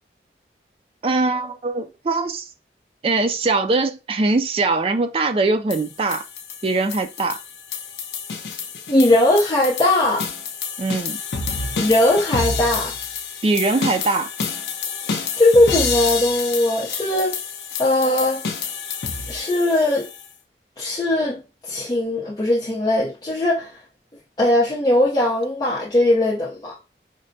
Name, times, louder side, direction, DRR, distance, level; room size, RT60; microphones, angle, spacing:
voice 1, 1.0-2.5 3.0-6.2 6.6-7.4 10.8-11.2 13.4-14.3, right 3 dB, 30° right, 0.3 m, -21 dB
sound 1, 5.7-20.3, left 5 dB, 70° left, 0.6 m, -29 dB
voice 2, 8.9-10.3 11.8-12.9 15.0-17.4 17.8-18.4 19.3-20.1 20.8-23.8 24.4-26.8, left 1 dB, 25° left, 0.6 m, -19 dB
5.1 x 2.1 x 2.6 m
head